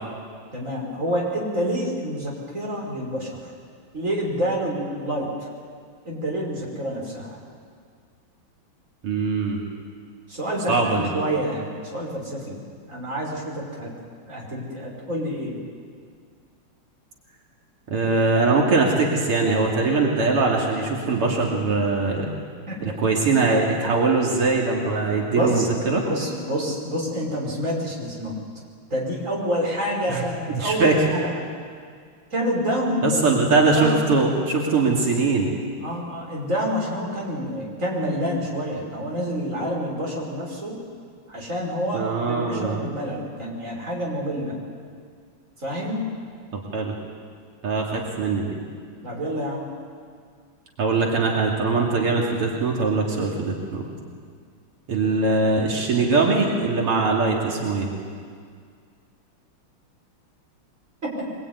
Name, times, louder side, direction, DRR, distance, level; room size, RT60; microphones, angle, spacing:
voice 1, 0.5-3.4 3.9-5.5 6.0-7.4 10.3-12.6 12.9-13.9 14.3-15.6 22.7-23.0 25.3-28.4 28.9-31.3 32.3-33.2 33.6-33.9 35.8-40.8 41.3-44.6 45.6-46.0 49.0-49.7 61.0-61.1, equal, 35° right, -2 dB, 5.7 m, -28 dB
voice 2, 9.0-9.6 10.7-11.1 17.9-22.3 22.8-26.0 30.1-30.2 30.5-31.0 33.0-35.5 41.9-42.8 46.5-46.9 47.6-48.6 50.8-53.9 54.9-57.9, right 3 dB, 85° right, -1 dB, 3.6 m, -21 dB
23.5 x 22.0 x 9.5 m, 2.1 s
omnidirectional pair, 2.4 m